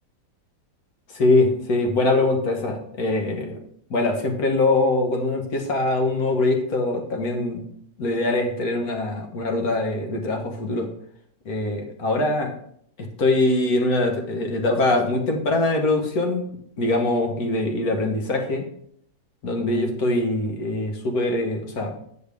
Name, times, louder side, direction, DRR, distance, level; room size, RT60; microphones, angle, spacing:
voice 1, 1.1-3.6 3.9-7.6 8.0-10.9 11.4-12.5 13.2-16.5 16.8-18.7 19.4-22.0, left 2 dB, 60° left, 2 dB, 1.7 m, -23 dB
7.5 x 6.7 x 3.5 m, 0.68 s
omnidirectional pair, 1.8 m